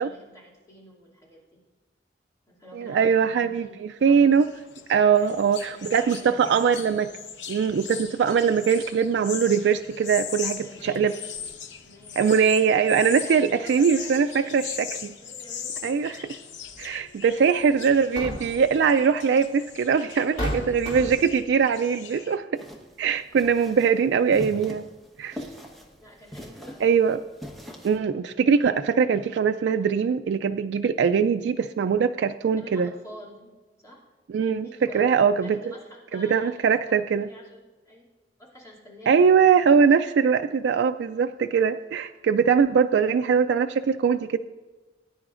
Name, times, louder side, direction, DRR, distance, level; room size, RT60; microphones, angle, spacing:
voice 1, 0.0-1.6 2.5-3.8 4.0-4.4 5.1-6.4 10.6-11.2 11.8-12.6 13.1-14.6 14.9-16.1 26.0-27.0 32.6-34.1 34.6-35.1 35.4-38.1 38.4-39.5, equal, 20° left, -4 dB, 2.5 m, -48 dB
voice 2, 2.7-3.7 4.0-4.5 4.9-7.1 7.5-11.1 12.2-14.3 14.5-15.1 15.8-16.2 16.8-22.5 23.0-24.9 25.2-25.5 26.8-27.2 27.8-32.9 34.3-34.7 34.9-35.6 36.1-37.3 39.1-44.4, right 6 dB, 65° right, 8 dB, 0.3 m, -21 dB
sound 1, 4.1-22.4, left 8 dB, 75° left, 0.8 m, -40 dB
sound 2, 16.8-16.9 17.9-18.7 19.7-19.8 20.4-21.4, equal, 40° left, 2.4 m, -31 dB
sound 3, 22.5-28.0, equal, ahead, 1.1 m, -42 dB
19.0 x 9.7 x 2.5 m, 1.3 s
head